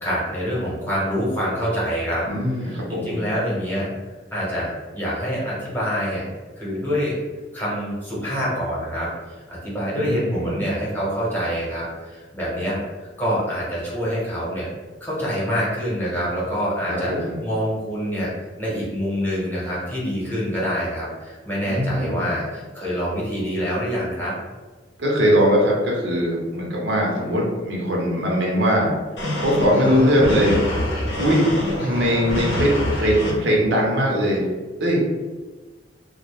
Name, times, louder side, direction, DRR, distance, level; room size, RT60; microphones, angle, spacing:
voice 1, 0.0-2.2 2.6-3.9 4.3-6.3 6.6-7.1 7.5-9.1 9.6-14.7 15.0-18.3 18.6-24.3, equal, 10° left, -7 dB, 0.8 m, -26 dB
voice 2, 2.3-3.2 9.9-10.6 16.9-17.4 21.6-22.3 25.0-28.9 29.4-30.7 31.2-34.5 34.8-35.0, equal, 80° right, -2 dB, 0.6 m, -21 dB
sound 1, 29.2-33.3, left 1 dB, 85° left, 0.7 m, -25 dB
2.2 x 2.0 x 2.9 m, 1.3 s
head